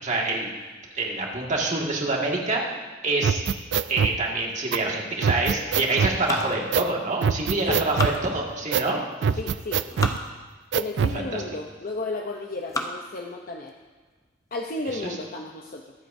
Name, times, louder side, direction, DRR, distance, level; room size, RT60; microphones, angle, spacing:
voice 1, 0.0-0.5 0.9-2.6 3.0-3.4 3.9-9.0 11.1-11.4 14.9-15.0, right 2 dB, 40° right, -1 dB, 1.9 m, -26 dB
sound 1, 3.2-4.2 4.7-4.8 5.2-6.2 6.7-6.9 7.2-8.2 8.7-8.9 9.2-10.2 10.7-11.2, right 6 dB, 65° right, 0.4 m, -23 dB
sound 2, 6.1-7.3 7.7-8.8 9.5-10.2 10.9-11.0 11.7-12.1 12.5-13.1 13.7-13.8 14.2-14.3 14.7-15.0, left 2 dB, 20° left, 0.9 m, -34 dB
voice 2, 9.4-9.8 10.7-13.7 14.5-15.9, left 2 dB, 50° left, 1 dB, 0.7 m, -33 dB
23.0 x 8.1 x 2.7 m, 1.4 s
head